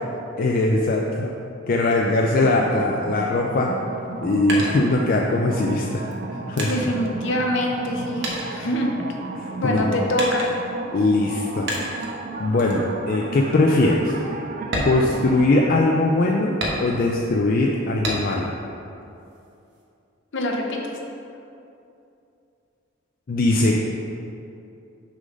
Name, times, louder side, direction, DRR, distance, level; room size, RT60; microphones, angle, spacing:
voice 1, 0.4-1.3 1.7-3.7 4.2-6.0 6.3-6.7 9.4-10.0 10.9-11.7 12.4-14.1 14.8-18.5 23.3-23.8, left 2 dB, 45° left, -1 dB, 0.4 m, -21 dB
sound 1, 2.4-15.8, right 3 dB, 45° right, 0.4 m, -34 dB
sound 2, 4.0-5.5 6.1-7.9 8.2-9.4 10.2-10.8 11.7-12.2 12.6-12.9 13.3-13.4 13.8-14.0 14.6-15.8 16.6-17.3 18.0-18.6 19.0-19.8, equal, 60° right, 1.1 m, -30 dB
voice 2, 6.7-8.9 9.6-10.5 20.3-21.0, equal, 65° left, 1 dB, 0.8 m, -24 dB
6.4 x 3.8 x 5.2 m, 2.7 s
head